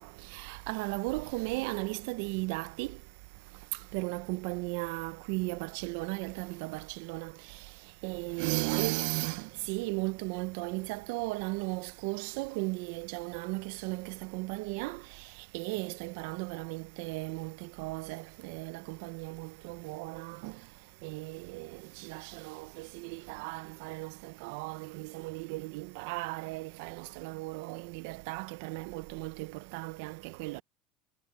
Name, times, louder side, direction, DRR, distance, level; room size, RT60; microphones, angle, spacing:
voice 1, 0.3-3.0 3.9-7.3 8.0-15.0 15.5-20.5 21.0-21.7 22.0-30.6, right 25 dB, 80° right, 0.4 m, -36 dB
cardioid pair, 155°, 0 cm